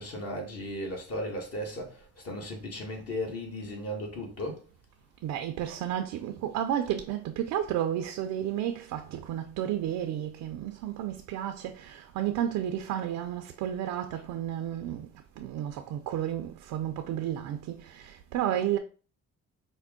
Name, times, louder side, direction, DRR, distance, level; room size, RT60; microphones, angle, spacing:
voice 1, 0.0-4.6, equal, 50° left, 1.5 m, -36 dB
voice 2, 5.2-15.1 15.4-18.8, right 11 dB, 90° right, 0.5 m, -32 dB
4.5 x 2.1 x 3.6 m
cardioid pair, 90°, 30 cm